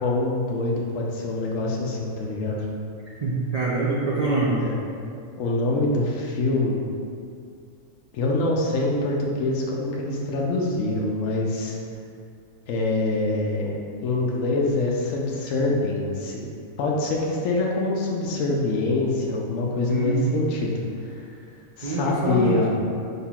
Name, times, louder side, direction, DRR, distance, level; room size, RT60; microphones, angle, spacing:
voice 1, 0.0-2.6 4.6-4.7 5.4-6.8 8.1-11.8 12.7-13.7 14.0-16.4 16.8-21.2 21.8-22.7, left 2 dB, 85° left, -2 dB, 1.0 m, -25 dB
voice 2, 3.2-4.6 19.9-20.4 21.8-22.7, right 3 dB, 60° right, -6 dB, 0.4 m, -25 dB
5.6 x 3.6 x 2.3 m, 2.4 s
omnidirectional pair, 1.4 m